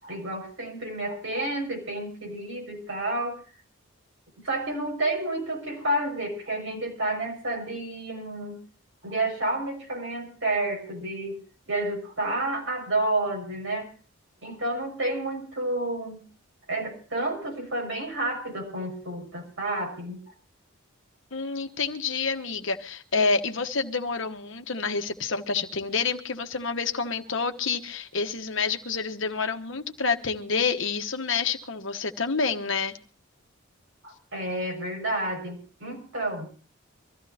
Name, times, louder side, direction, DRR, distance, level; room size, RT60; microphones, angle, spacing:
voice 1, 0.0-3.4 4.4-8.6 9.0-11.4 11.7-13.9 14.4-16.2 16.7-20.2 34.0-36.5, right 2 dB, 65° right, 6.0 m, -30 dB
voice 2, 21.3-32.9, left 4 dB, 60° left, 1.2 m, -28 dB
24.0 x 14.5 x 2.8 m
head